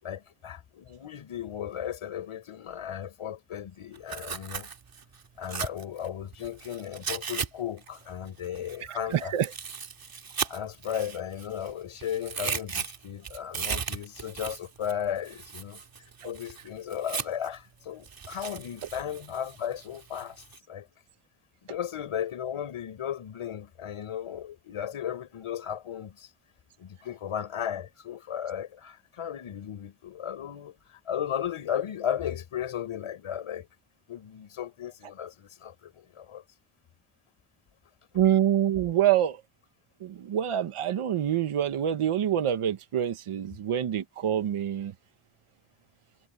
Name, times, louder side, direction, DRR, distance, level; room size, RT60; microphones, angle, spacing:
voice 1, 0.0-4.7 5.4-9.3 10.4-15.8 16.2-20.9 21.7-26.3 26.8-33.7 34.1-36.4, left 9 dB, 80° left, 5.6 m, -35 dB
Tearing, 3.9-7.5 7.8-11.7 12.0-17.6 18.0-20.6, right 6 dB, 45° right, 2.6 m, -37 dB
voice 2, 8.9-9.5 38.1-39.4 40.0-44.9, right 10 dB, 80° right, 1.7 m, -26 dB
wide cardioid pair, 170°, 50 cm